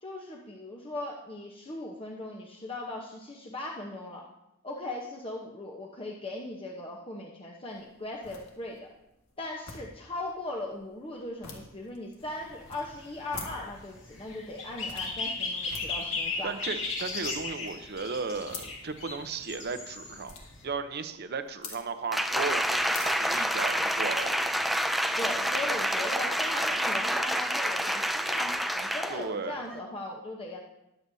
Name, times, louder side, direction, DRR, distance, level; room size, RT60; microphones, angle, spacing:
voice 1, 0.0-4.3 4.6-8.9 9.4-16.5 25.2-30.6, left 2 dB, 25° left, -1 dB, 0.9 m, -39 dB
sound 1, 7.7-24.2, left 4 dB, 90° left, 1.7 m, -49 dB
sound 2, 12.2-20.6, left 3 dB, 65° left, 2.1 m, -36 dB
voice 2, 16.4-20.3 20.6-24.4 29.1-29.6, right 4 dB, 50° right, 9 dB, 0.8 m, -35 dB
Applause, 22.1-29.3 29.7-29.8, equal, ahead, 0.3 m, -28 dB
20.5 x 7.8 x 2.7 m, 0.87 s
head